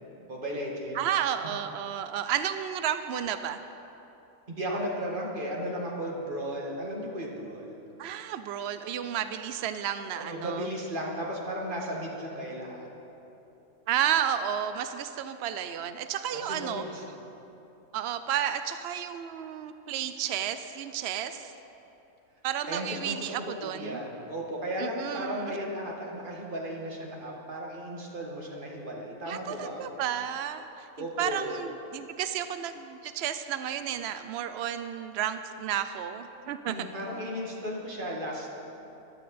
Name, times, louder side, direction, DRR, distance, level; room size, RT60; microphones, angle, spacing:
voice 1, 0.3-1.0 4.5-7.8 10.2-12.9 16.3-17.0 22.7-30.0 31.0-31.6 36.7-38.6, equal, 35° right, -2 dB, 1.9 m, -35 dB
voice 2, 0.9-3.6 8.0-10.7 13.9-16.8 17.9-21.5 22.4-24.0 24.8-25.5 29.3-36.9, right 9 dB, 80° right, 10 dB, 0.5 m, -32 dB
15.5 x 11.5 x 4.2 m, 3.0 s
omnidirectional pair, 1.6 m